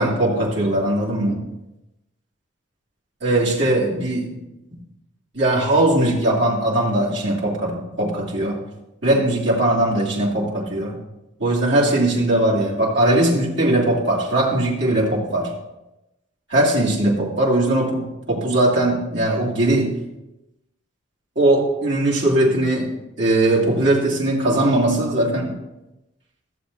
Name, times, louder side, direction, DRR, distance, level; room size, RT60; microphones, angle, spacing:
voice 1, 0.0-1.4 3.2-4.4 5.3-8.6 9.0-10.9 11.4-15.5 16.5-20.0 21.4-22.9 23.2-25.6, right 1 dB, 60° right, -5 dB, 2.4 m, -20 dB
15.0 x 7.1 x 2.7 m, 0.95 s
head